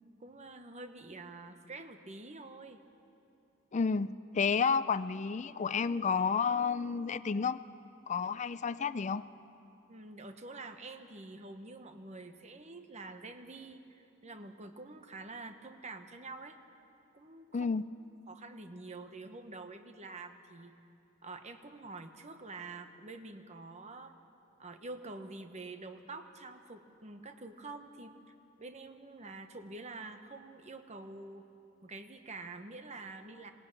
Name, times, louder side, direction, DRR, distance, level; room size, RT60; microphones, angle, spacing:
voice 1, 0.2-2.8 9.9-16.6 17.1-17.7 18.3-20.7 21.2-24.1 24.6-28.2 28.6-31.4 31.8-33.5, right 3 dB, 35° right, 7 dB, 1.1 m, -47 dB
voice 2, 3.7-7.6 8.1-9.2 17.5-17.8, left 5 dB, 35° left, 15 dB, 0.4 m, -31 dB
20.5 x 18.0 x 8.9 m, 2.8 s
head